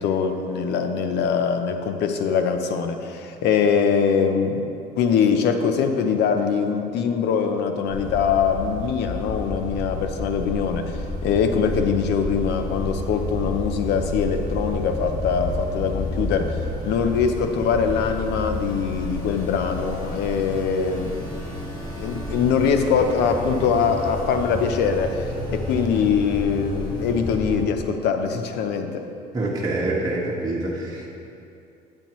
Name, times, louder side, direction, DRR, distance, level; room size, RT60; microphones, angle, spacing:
voice 1, 0.0-4.7 5.0-21.3 22.0-29.0, left 6 dB, 80° left, 7 dB, 0.7 m, -23 dB
sound 1, 7.9-27.6, left 1 dB, 25° left, 1.9 m, -31 dB
voice 2, 29.3-31.1, right 2 dB, 20° right, -5 dB, 1.3 m, -26 dB
8.8 x 8.8 x 3.1 m, 2.6 s
cardioid pair, 110°, 17 cm